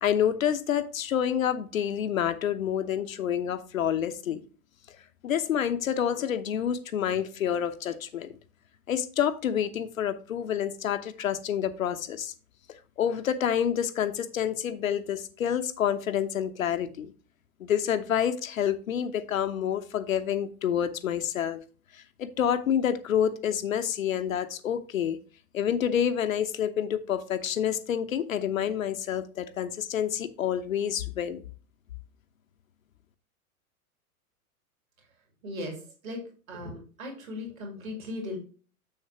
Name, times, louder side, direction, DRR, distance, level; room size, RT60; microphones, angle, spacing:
voice 1, 0.0-4.4 5.2-8.3 8.9-12.3 13.0-17.1 17.6-21.6 21.9-25.2 25.5-31.4, left 9 dB, 65° left, 11 dB, 0.9 m, -28 dB
voice 2, 35.4-38.4, left 1 dB, 65° right, 1 dB, 3.1 m, -38 dB
7.2 x 6.6 x 2.8 m, 0.38 s
figure-of-eight pair, 100°, 45 cm